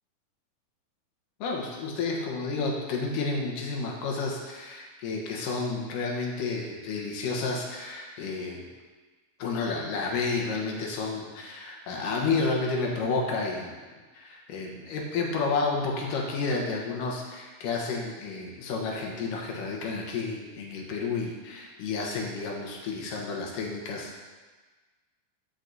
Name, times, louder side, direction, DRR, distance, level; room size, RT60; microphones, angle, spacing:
voice 1, 1.4-8.7 9.4-13.7 14.1-24.2, left 4 dB, 75° left, 0 dB, 2.7 m, -31 dB
13.0 x 5.9 x 2.7 m, 1.3 s
omnidirectional pair, 3.9 m